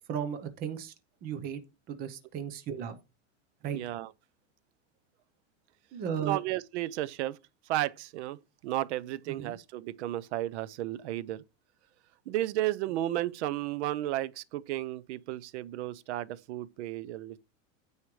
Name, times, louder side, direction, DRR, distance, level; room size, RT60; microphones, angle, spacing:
voice 1, 0.1-0.9 1.2-1.6 1.9-3.0 3.6-3.8 5.9-6.4 9.3-9.5, right 8 dB, 25° right, 0.8 m, -35 dB
voice 2, 3.7-4.1 6.2-7.4 7.7-11.4 12.3-17.4, right 14 dB, 60° right, 0.7 m, -33 dB
9.6 x 7.2 x 3.2 m
supercardioid pair, 165°, 39 cm